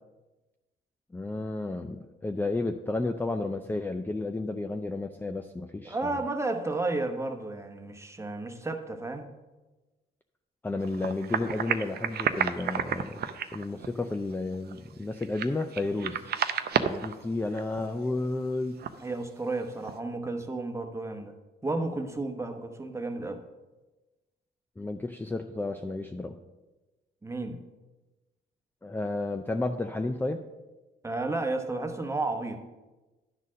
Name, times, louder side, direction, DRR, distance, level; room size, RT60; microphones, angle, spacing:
voice 1, 1.1-6.2 10.6-16.2 16.8-18.8 24.8-26.4 28.8-30.4, left 2 dB, 10° left, 6 dB, 0.4 m, -32 dB
voice 2, 5.8-9.3 16.0-16.1 19.0-21.3 21.6-23.4 27.2-27.6 31.0-32.6, right 2 dB, 15° right, 5 dB, 1.0 m, -32 dB
sound 1, 10.8-17.2 17.5-17.8 18.1-18.2 18.5-18.6 18.8-19.1 19.8-19.9, right 8 dB, 55° right, 0.6 m, -31 dB
11.0 x 4.1 x 6.3 m, 1.1 s
cardioid pair, 90°, 20 cm